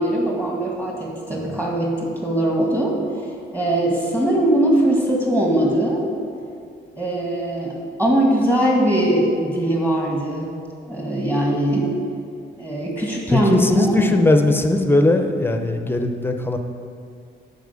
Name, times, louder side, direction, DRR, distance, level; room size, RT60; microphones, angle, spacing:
voice 1, 0.0-3.0 3.5-6.0 7.0-10.5 10.9-11.9 12.6-14.0, right 1 dB, 15° right, -3 dB, 1.9 m, -21 dB
voice 2, 13.3-16.6, left 2 dB, 10° left, 5 dB, 0.8 m, -18 dB
10.0 x 4.3 x 6.9 m, 2.3 s
cardioid pair, 90°, 20 cm